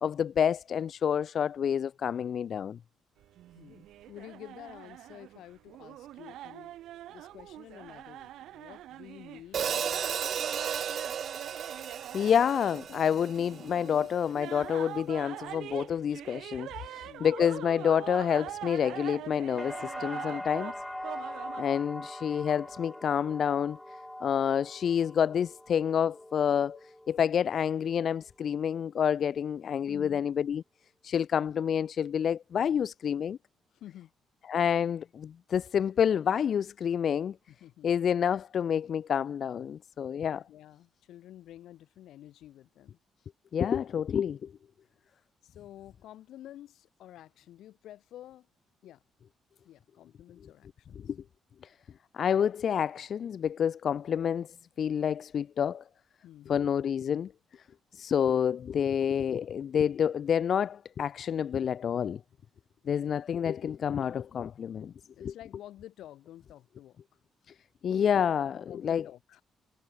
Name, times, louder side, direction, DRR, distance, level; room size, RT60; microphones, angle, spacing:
voice 1, 0.0-2.8 12.1-20.7 21.6-23.8 24.2-30.6 31.0-33.4 34.5-37.4 37.8-40.4 43.5-44.5 51.0-51.2 51.6-51.7 52.1-55.8 56.5-57.3 57.9-62.2 62.9-64.9 65.2-65.3 67.8-69.0, left 8 dB, 55° left, 1.6 m, -28 dB
sound 1, 3.2-21.6, right 13 dB, 80° right, 2.8 m, -44 dB
voice 2, 3.6-6.7 7.1-10.4 16.8-17.3 29.9-30.2 33.7-34.1 37.5-37.9 40.3-43.0 45.4-48.5 48.8-49.0 49.6-51.0 56.2-56.7 65.1-67.0 68.7-69.4, left 13 dB, 80° left, 5.8 m, -50 dB
Hi-hat, 9.5-13.8, right 8 dB, 55° right, 0.9 m, -34 dB
sound 2, 19.6-27.5 27.8-28.5, left 1 dB, 5° left, 1.1 m, -42 dB
cardioid pair, 90°, 0 cm